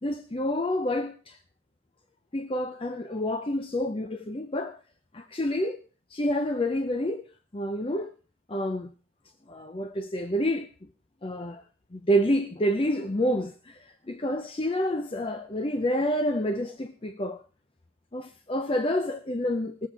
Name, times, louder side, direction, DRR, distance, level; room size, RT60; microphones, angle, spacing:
voice 1, 0.0-1.4 2.3-4.8 5.1-5.8 6.1-7.3 7.5-8.1 8.5-8.9 9.5-10.7 11.2-11.6 11.9-17.4 18.1-19.9, equal, 25° left, 0.6 m, -28 dB
19.5 x 7.5 x 4.7 m
head